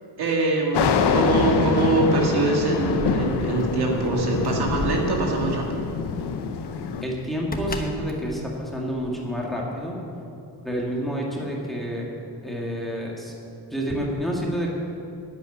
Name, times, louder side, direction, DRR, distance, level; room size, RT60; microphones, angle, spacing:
voice 1, 0.2-5.9, right 3 dB, 65° right, 0 dB, 2.4 m, -24 dB
sound 1, 0.7-7.0, left 5 dB, 75° left, 1.0 m, -24 dB
Keys jangling, 2.7-9.5, left 2 dB, 20° left, 1.0 m, -37 dB
voice 2, 7.0-10.0 10.6-12.1 12.4-13.3 13.7-14.7, equal, ahead, -3 dB, 2.0 m, -28 dB
11.0 x 8.3 x 9.8 m, 2.6 s
wide cardioid pair, 150°, 41 cm